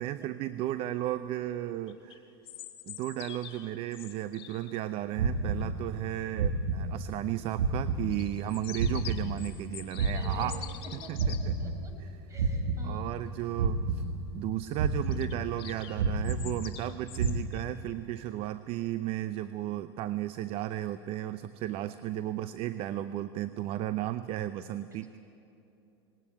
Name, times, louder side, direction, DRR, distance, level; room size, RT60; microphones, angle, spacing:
voice 1, 0.0-2.2 2.9-10.6 10.9-11.6 12.8-14.1 14.3-25.2, right 13 dB, 45° right, 13 dB, 0.7 m, -34 dB
sound 1, 1.9-4.8 8.1-11.4 15.0-17.8, left 12 dB, 45° left, 2.3 m, -46 dB
sound 2, 5.2-6.1 6.4-7.3 7.6-9.7 10.0-12.1 12.4-13.3 13.6-14.5 14.8-15.7 16.0-16.9 17.2-17.4, right 3 dB, 85° right, 1.5 m, -31 dB
voice 2, 10.0-10.5 10.8-11.9 12.3-13.0, equal, 25° right, 4 dB, 5.0 m, -49 dB
19.5 x 18.5 x 9.9 m, 2.9 s
hypercardioid pair, 100°, 13 cm